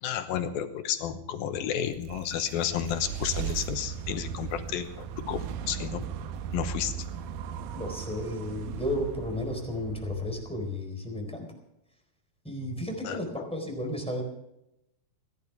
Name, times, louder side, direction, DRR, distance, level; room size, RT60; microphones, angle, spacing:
voice 1, 0.0-6.1 6.5-6.9 13.0-13.5, left 9 dB, 85° left, 8 dB, 2.9 m, -32 dB
sound 1, 1.6-10.9, right 8 dB, 80° right, 2.6 m, -37 dB
voice 2, 7.7-11.5 12.4-14.2, left 1 dB, ahead, 1 dB, 3.6 m, -33 dB
28.0 x 11.0 x 3.5 m, 0.86 s
omnidirectional pair, 4.2 m